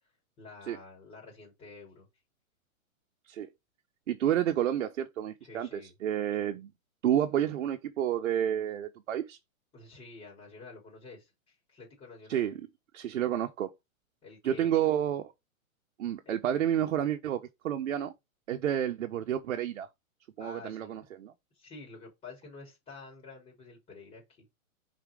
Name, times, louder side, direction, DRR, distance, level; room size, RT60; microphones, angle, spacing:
voice 1, 0.4-2.1 5.4-5.9 6.4-6.5 9.7-12.5 14.2-14.9 16.2-16.3 20.4-21.0 21.5-24.4, left 3 dB, 15° left, 4.1 m, -49 dB
voice 2, 4.1-6.7 7.0-9.4 12.3-12.6 12.9-13.7 14.4-15.2 16.0-18.1 18.5-19.9 20.4-21.3, right 10 dB, 60° right, 1.3 m, -30 dB
5.7 x 4.8 x 4.9 m
hypercardioid pair, 160°, 42 cm